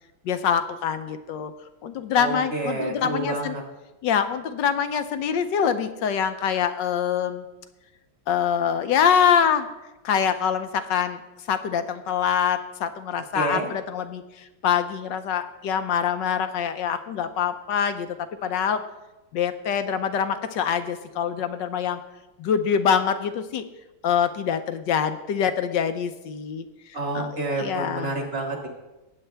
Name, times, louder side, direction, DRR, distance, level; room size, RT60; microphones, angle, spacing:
voice 1, 0.2-1.5 1.8-3.6 4.0-7.4 8.3-9.7 10.0-11.2 11.5-18.2 18.4-18.8 19.3-22.0 22.4-23.6 24.0-26.7 27.1-28.1, left 8 dB, 70° left, 10 dB, 1.3 m, -24 dB
voice 2, 2.2-3.6 13.3-13.7 26.9-28.7, right 2 dB, 30° right, 1 dB, 1.9 m, -29 dB
18.5 x 7.7 x 3.4 m, 1.0 s
omnidirectional pair, 2.1 m